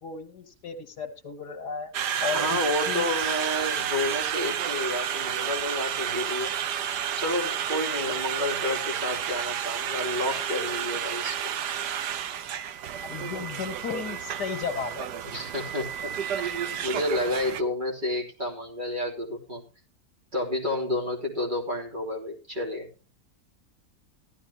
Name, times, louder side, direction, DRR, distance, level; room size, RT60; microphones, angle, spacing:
voice 1, 0.0-1.9 2.2-2.6 2.9-3.1 13.1-15.1 17.5-17.6, left 6 dB, 90° left, 3 dB, 2.2 m, -34 dB
Conversation, 1.9-17.6, right 9 dB, 85° right, 1.5 m, -31 dB
voice 2, 2.3-6.5 7.2-11.5 15.2-19.6 20.3-22.9, left 1 dB, 30° right, 1 dB, 3.5 m, -30 dB
15.0 x 13.0 x 2.9 m, 0.32 s
omnidirectional pair, 1.7 m